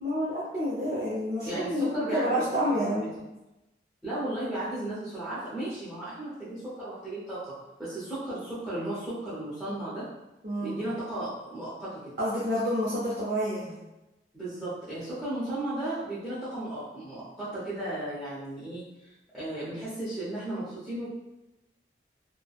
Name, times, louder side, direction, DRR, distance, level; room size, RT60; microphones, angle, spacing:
voice 1, 0.0-3.1 10.4-10.8 12.2-13.7, equal, 55° right, -8 dB, 0.6 m, -28 dB
voice 2, 1.4-3.1 4.0-10.0 10.6-12.1 14.3-21.1, right 1 dB, ahead, -13 dB, 0.6 m, -35 dB
3.1 x 2.1 x 2.3 m, 0.99 s
head